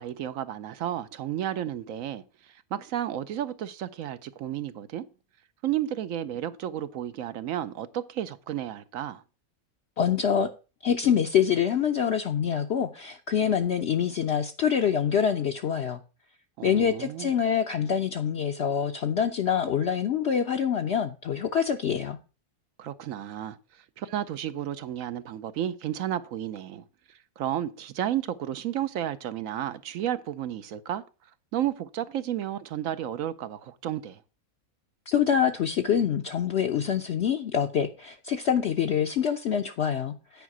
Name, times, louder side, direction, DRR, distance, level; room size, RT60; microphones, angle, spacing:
voice 1, 0.0-5.0 5.6-9.2 16.6-17.3 22.8-23.6 24.0-31.0 31.5-34.2, right 11 dB, 70° right, 1.0 m, -32 dB
voice 2, 10.0-10.5 10.8-16.0 16.6-22.2 35.1-40.4, left 8 dB, 60° left, 0.8 m, -25 dB
9.3 x 4.9 x 5.9 m
omnidirectional pair, 1.5 m